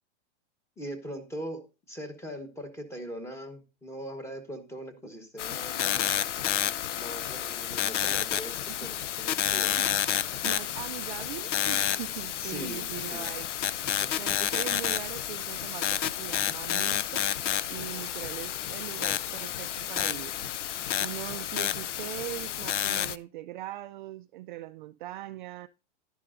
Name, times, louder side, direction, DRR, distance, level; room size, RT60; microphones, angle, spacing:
voice 1, 0.8-1.6 1.9-6.3 6.9-9.8 10.3-10.4 12.4-13.3 14.0-14.1, equal, 10° left, 1.2 m, -41 dB
sound 1, 5.4-23.2, left 11 dB, 90° left, 0.6 m, -30 dB
voice 2, 10.1-13.8 14.1-17.3 17.7-20.3 21.0-25.7, right 15 dB, 45° right, 0.4 m, -41 dB
11.0 x 10.5 x 2.5 m
hypercardioid pair, 145°, 35 cm